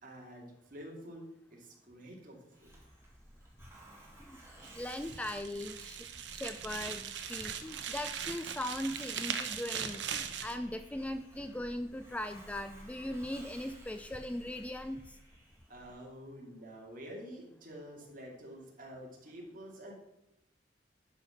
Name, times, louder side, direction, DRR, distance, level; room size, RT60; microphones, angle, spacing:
voice 1, 0.0-2.7 15.7-19.9, equal, 50° right, -1 dB, 2.3 m, -48 dB
Hiss, 2.5-16.0, right 1 dB, 15° right, 1.9 m, -55 dB
sound 1, 4.6-10.6, right 8 dB, 90° right, 0.8 m, -40 dB
voice 2, 4.7-6.0 6.3-15.2, left 1 dB, 10° left, 8 dB, 0.3 m, -39 dB
11.0 x 4.1 x 5.7 m, 0.87 s
head